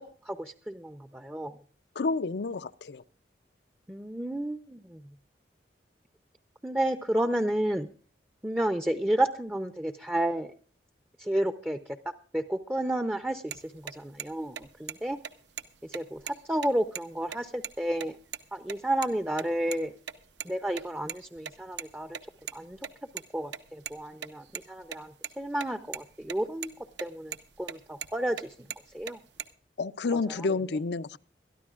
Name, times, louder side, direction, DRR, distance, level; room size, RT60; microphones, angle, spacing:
voice 1, 0.0-1.6 3.9-5.0 6.6-7.9 8.4-10.5 11.2-12.0 12.3-15.2 15.9-18.2 18.5-20.0 20.4-22.2 22.5-22.8 23.3-26.7 27.0-28.7 28.9-29.2 30.3-30.5, right 1 dB, 10° right, 0.6 m, -31 dB
voice 2, 2.0-3.0 29.8-31.2, left 3 dB, 70° left, 0.5 m, -30 dB
sound 1, 13.5-13.6 13.9-14.0 14.2-14.3 14.6-14.9 15.2-15.3 15.6-15.7 15.9-17.0 17.3-17.4 17.6-17.7 18.0-18.4 18.7-19.1 19.4-20.5 20.7-23.2 23.5-25.3 25.6-25.7 25.9-26.4 26.6-27.0 27.3-28.4 28.7-29.4, right 8 dB, 80° right, 1.0 m, -38 dB
22.0 x 13.5 x 2.4 m
head